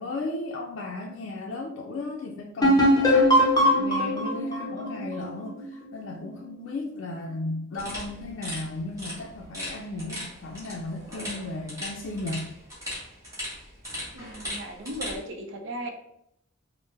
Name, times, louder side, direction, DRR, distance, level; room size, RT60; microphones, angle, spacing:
voice 1, 0.0-3.5 3.8-12.5, left 2 dB, 70° left, -1 dB, 0.4 m, -35 dB
sound 1, 2.6-6.2, equal, 20° left, 0.6 m, -21 dB
sound 2, 7.8-15.2, left 1 dB, 15° right, 1.2 m, -38 dB
voice 2, 14.1-15.9, right 1 dB, 65° right, 4 dB, 0.5 m, -36 dB
3.3 x 2.0 x 3.1 m, 0.76 s
head